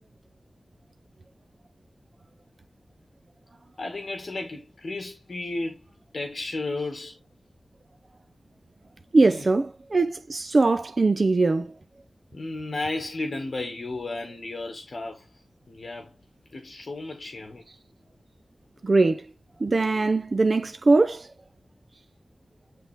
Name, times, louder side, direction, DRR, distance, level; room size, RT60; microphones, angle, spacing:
voice 1, 3.8-5.8 6.1-7.2 9.2-9.6 12.3-15.3 15.7-16.1 16.5-17.6, left 2 dB, 55° left, 1.8 m, -33 dB
voice 2, 9.1-11.7 18.8-19.2 19.6-21.3, right 3 dB, 50° right, 0.6 m, -21 dB
10.5 x 3.8 x 3.4 m
wide cardioid pair, 95°, 0 cm